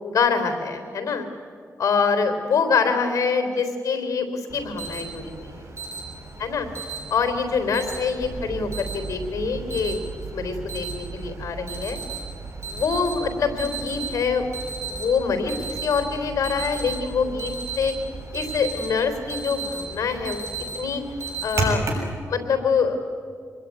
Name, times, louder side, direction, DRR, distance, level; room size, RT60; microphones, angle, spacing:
voice 1, 0.0-1.3 1.8-5.6 6.4-6.7 7.1-10.0 10.3-12.0 12.7-14.4 14.9-17.9 18.3-20.5 20.7-21.0 21.4-21.8 22.2-23.0, left 5 dB, 75° left, 7 dB, 3.7 m, -25 dB
Alarm, 4.5-22.1, right 3 dB, 55° right, 6.6 m, -34 dB
sound 1, 8.2-19.2, right 5 dB, 35° right, 6.2 m, -39 dB
26.0 x 21.0 x 9.7 m, 2.1 s
cardioid pair, 70°, 6 cm